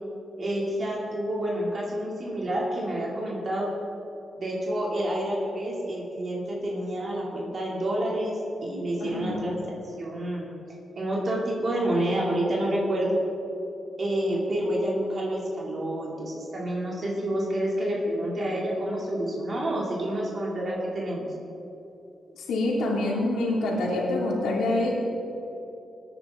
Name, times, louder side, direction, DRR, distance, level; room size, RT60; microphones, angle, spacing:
voice 1, 0.4-3.7 4.3-9.6 9.8-10.5 10.9-13.2 14.0-21.3, right 1 dB, 45° right, -4 dB, 2.9 m, -28 dB
voice 2, 9.0-9.4 22.4-24.9, left 2 dB, 85° left, -2 dB, 2.6 m, -26 dB
18.0 x 9.9 x 3.8 m, 2.9 s
cardioid pair, 80°, 0 cm